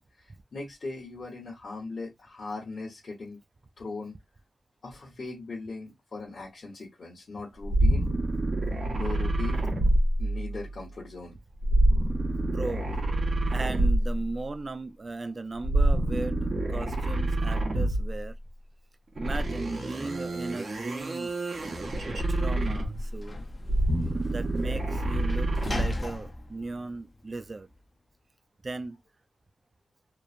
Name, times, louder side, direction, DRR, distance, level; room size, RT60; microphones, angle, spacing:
voice 1, 0.0-3.4 3.8-4.2 4.8-8.1 8.9-9.7 10.2-11.4, left 3 dB, 60° left, 1.0 m, -39 dB
sound 1, 7.6-10.7 11.6-14.3 15.6-18.2 19.2-23.1 23.6-26.1, right 1 dB, 55° right, 1.1 m, -27 dB
voice 2, 12.4-12.9 13.5-18.4 19.2-21.3 22.3-23.4 24.3-27.7 28.6-29.0, right 3 dB, 35° right, 0.3 m, -37 dB
Sliding door / Slam, 22.0-27.8, left 2 dB, 35° left, 0.6 m, -43 dB
3.1 x 2.1 x 2.4 m
wide cardioid pair, 100°, 0 cm